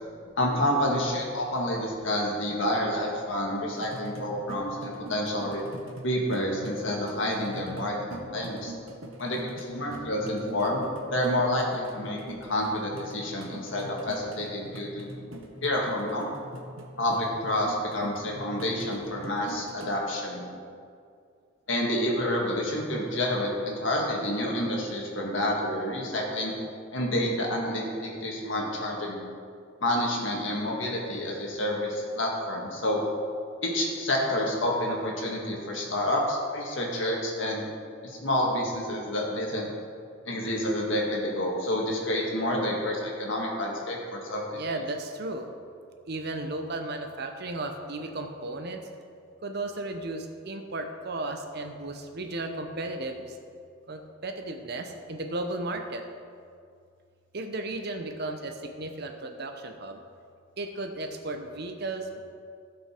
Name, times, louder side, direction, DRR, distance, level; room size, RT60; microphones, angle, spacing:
voice 1, 0.4-5.6 6.0-8.7 9.2-10.8 11.1-15.1 15.6-16.3 17.0-20.4 21.7-26.5 26.9-29.2 29.8-33.0 33.6-37.6 38.0-39.7 40.3-44.4, left 1 dB, 65° left, -1 dB, 1.9 m, -29 dB
sound 1, 3.7-20.1, right 1 dB, 80° right, 1.3 m, -43 dB
voice 2, 44.5-45.5 46.1-48.8 49.4-53.4 53.9-56.0 57.3-60.0 60.6-62.2, right 2 dB, 55° right, 5 dB, 0.9 m, -35 dB
15.5 x 5.3 x 4.5 m, 2.3 s
head